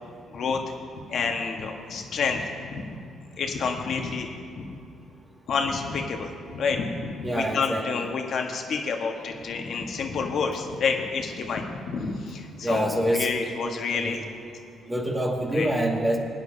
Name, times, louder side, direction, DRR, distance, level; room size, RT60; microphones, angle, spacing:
voice 1, 0.3-0.7 1.1-2.4 2.7-2.8 3.4-4.3 4.5-4.7 5.5-14.2 15.5-15.7, left 5 dB, 65° left, 3 dB, 1.4 m, -29 dB
voice 2, 7.2-8.1 12.6-13.3 13.9-14.2 14.9-16.2, right 1 dB, 20° right, -1 dB, 2.0 m, -26 dB
21.5 x 9.4 x 2.8 m, 2.4 s
supercardioid pair, 70°, 0 cm